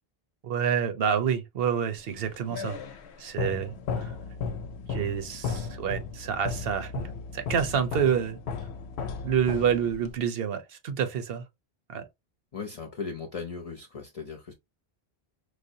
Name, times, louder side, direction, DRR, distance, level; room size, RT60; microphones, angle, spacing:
voice 1, 0.4-2.8 3.2-4.1 4.9-6.9 7.3-8.4 9.2-11.4 11.9-12.0, right 8 dB, 70° right, 0.8 m, -28 dB
sound 1, 2.1-10.2, left 5 dB, 90° left, 0.8 m, -35 dB
voice 2, 12.5-14.5, left 5 dB, 40° left, 0.6 m, -37 dB
4.8 x 2.1 x 2.6 m
omnidirectional pair, 1.1 m